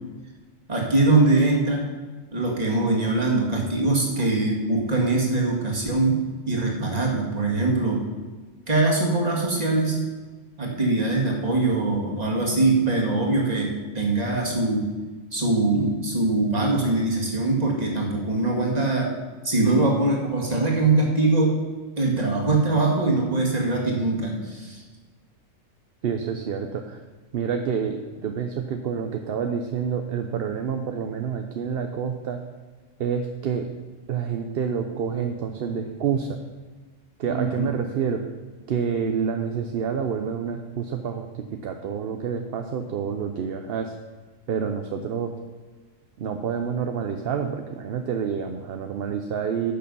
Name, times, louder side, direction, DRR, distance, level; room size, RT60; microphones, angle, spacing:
voice 1, 0.7-1.9 2.3-6.2 6.5-8.0 8.7-10.0 10.6-14.8 15.3-19.1 19.4-21.6 22.0-24.8 37.3-37.8, right 2 dB, 30° right, -2 dB, 2.0 m, -22 dB
voice 2, 26.0-27.0 27.3-32.4 33.0-33.7 34.1-36.4 37.2-38.2 38.7-43.9 44.5-45.3 46.2-49.7, right 7 dB, 60° right, 5 dB, 0.8 m, -28 dB
10.5 x 6.7 x 5.4 m, 1.3 s
omnidirectional pair, 1.3 m